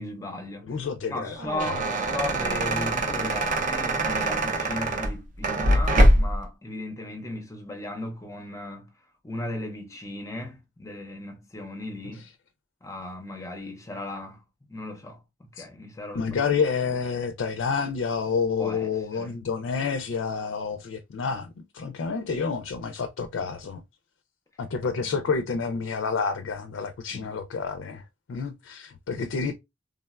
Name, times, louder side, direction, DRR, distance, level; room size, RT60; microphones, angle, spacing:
voice 1, 0.0-0.8 1.1-8.9 9.2-12.3 12.8-14.4 14.7-16.4 18.6-19.3 25.0-25.2 27.1-27.3, left 1 dB, 15° left, 0.5 m, -36 dB
voice 2, 0.7-1.3 15.6-15.7 16.1-23.8 24.6-28.0 28.3-29.5, left 5 dB, 70° left, 0.4 m, -29 dB
sound 1, 1.2-6.4, right 1 dB, 40° right, 0.5 m, -23 dB
3.4 x 2.1 x 2.3 m
head